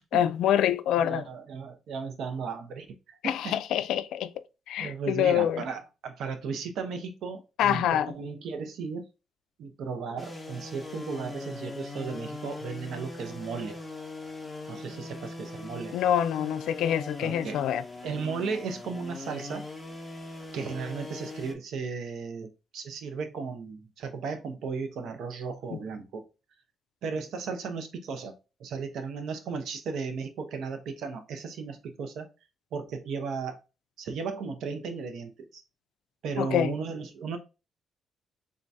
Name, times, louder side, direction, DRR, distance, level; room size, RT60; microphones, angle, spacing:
voice 1, 0.1-1.2 3.2-4.3 4.7-5.6 7.6-8.1 15.9-17.8 25.7-25.8 36.4-36.7, left 10 dB, 85° left, 0.3 m, -26 dB
voice 2, 1.0-3.6 4.8-9.1 9.6-13.8 14.7-16.0 17.2-17.6 18.0-19.7 20.5-26.2 27.0-28.3 28.6-32.3 32.7-33.6 34.0-35.6 36.2-37.4, right 5 dB, 75° right, 0.7 m, -35 dB
sound 1, 10.2-21.5, left 2 dB, 15° left, 0.9 m, -41 dB
3.7 x 2.7 x 3.3 m
cardioid pair, 90°, 0 cm